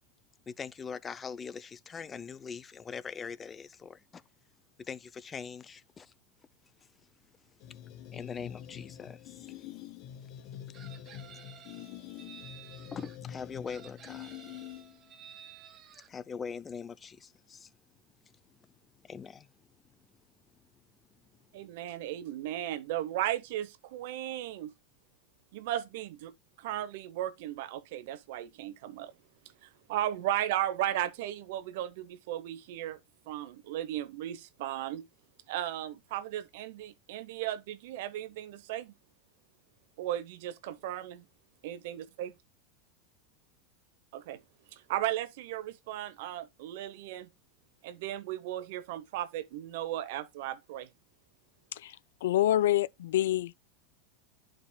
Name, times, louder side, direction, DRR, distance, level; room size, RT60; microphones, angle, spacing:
voice 1, 0.5-4.2 4.8-6.1 6.8-6.9 7.7-7.8 8.1-9.8 12.9-14.3 16.0-17.7 18.2-19.5, left 6 dB, 25° left, 0.5 m, -42 dB
sound 1, 7.6-15.1, left 10 dB, 55° left, 1.3 m, -46 dB
Chicken rooster, 10.7-13.2 13.7-16.1, right 8 dB, 35° right, 0.9 m, -52 dB
voice 2, 21.5-24.7 25.5-29.1 29.6-33.0 33.3-35.0 35.5-38.9 40.0-41.2 41.6-42.3 44.1-44.4 44.7-47.3 47.8-50.9, right 13 dB, 70° right, 0.8 m, -36 dB
voice 3, 51.7-53.5, left 13 dB, 80° left, 0.4 m, -27 dB
11.5 x 5.0 x 2.2 m
hypercardioid pair, 115°, 0 cm